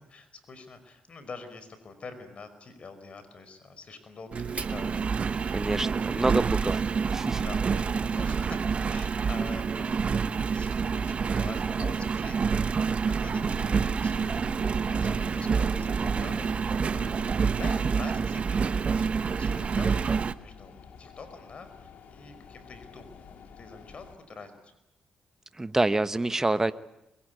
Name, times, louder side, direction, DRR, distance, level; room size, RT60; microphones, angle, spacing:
voice 1, 0.0-5.0 5.3-6.6 7.4-12.4 12.9-14.5 14.8-17.2 17.6-20.7 21.0-24.6, left 4 dB, 50° left, 10 dB, 5.2 m, -46 dB
Engine, 4.3-20.3, right 5 dB, 50° right, 1.0 m, -27 dB
voice 2, 5.5-6.8 7.1-7.4 25.6-26.7, right 2 dB, 20° right, 13 dB, 1.1 m, -26 dB
sound 1, 13.3-24.2, left 6 dB, 75° left, 2.6 m, -49 dB
23.0 x 22.5 x 9.6 m, 0.86 s
cardioid pair, 70°, 3 cm